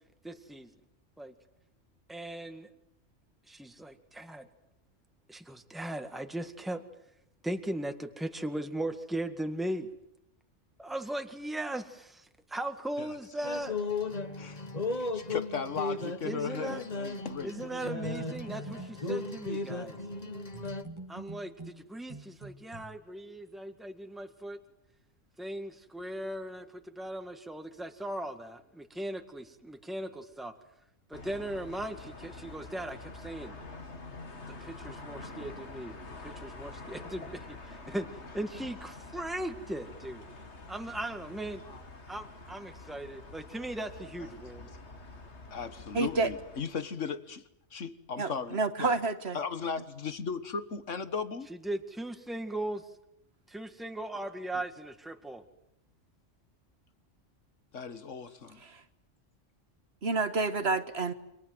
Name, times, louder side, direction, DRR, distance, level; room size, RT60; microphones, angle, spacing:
voice 1, 0.2-0.7 1.2-1.3 2.1-2.7 3.5-4.5 5.3-6.8 7.4-9.9 10.8-13.8 16.2-16.8 17.4-20.0 21.1-24.6 25.4-30.5 31.1-33.6 34.6-40.3 40.7-41.6 42.1-44.7 51.6-52.8 53.5-55.4, right 1 dB, ahead, 7 dB, 1.8 m, -38 dB
sound 1, 13.4-20.8, left 3 dB, 35° left, 1.5 m, -36 dB
voice 2, 15.0-17.6 41.6-41.8 44.2-44.7 45.5-48.9 49.3-51.5 54.5-54.6 57.7-58.6, left 5 dB, 85° left, 12 dB, 1.9 m, -37 dB
sound 2, 17.8-19.3 20.5-22.8, right 2 dB, 25° right, 1.9 m, -45 dB
sound 3, 31.1-46.6, left 3 dB, 65° left, 2.6 m, -47 dB
voice 3, 45.9-46.3 48.2-49.4 60.0-61.1, right 3 dB, 60° right, 11 dB, 1.8 m, -29 dB
29.5 x 26.0 x 7.8 m, 0.77 s
omnidirectional pair, 1.2 m